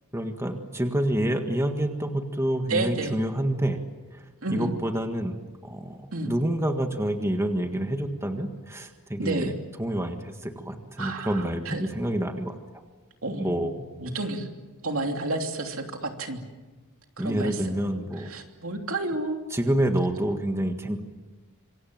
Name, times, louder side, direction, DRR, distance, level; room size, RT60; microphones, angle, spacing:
voice 1, 0.1-3.8 4.1-4.2 4.5-5.4 5.6-9.5 9.8-12.5 13.4-13.7 17.2-18.3 19.5-21.0, right 1 dB, 15° right, 5 dB, 1.7 m, -28 dB
voice 2, 2.7-3.2 4.4-4.7 6.1-6.3 9.2-9.5 11.0-11.9 13.2-14.5 14.8-16.4 17.2-17.8 18.2-19.4, right 2 dB, 70° right, 3 dB, 3.1 m, -31 dB
26.5 x 24.0 x 7.5 m, 1.2 s
head